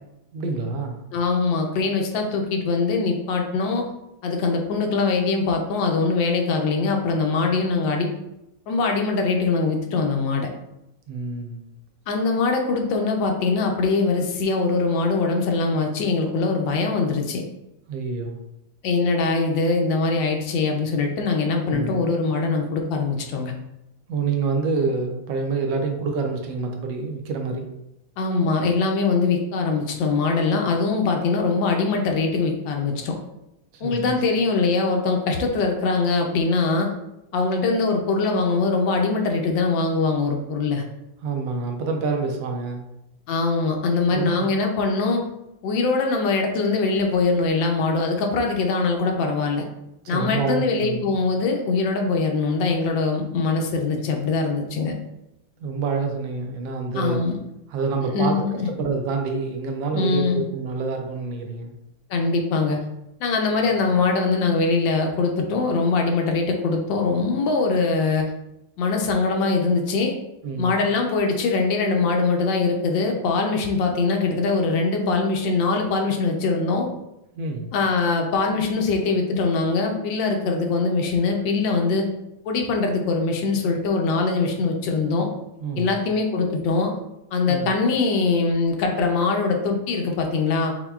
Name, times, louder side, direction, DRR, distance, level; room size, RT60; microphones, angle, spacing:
voice 1, 0.3-1.0 11.1-11.6 17.9-18.4 21.7-22.1 24.1-27.7 33.7-34.1 41.2-42.8 43.9-44.3 50.0-51.1 55.6-57.2 57.7-61.7 70.4-70.8 77.4-77.7 85.6-86.0 87.5-87.7, right 4 dB, 75° right, 3 dB, 1.2 m, -27 dB
voice 2, 1.1-3.9 4.2-8.1 8.7-10.5 12.1-17.4 18.8-23.5 28.2-33.2 33.8-36.9 37.3-40.8 43.3-45.2 45.6-49.6 50.1-54.9 56.9-57.4 58.0-58.7 59.9-60.4 62.1-62.8 63.2-68.3 68.8-70.2 70.6-76.9 77.7-82.0 82.4-85.3 85.8-86.9 87.3-90.7, left 4 dB, 75° left, 2 dB, 1.3 m, -22 dB
5.6 x 2.1 x 2.3 m, 0.88 s
omnidirectional pair, 2.1 m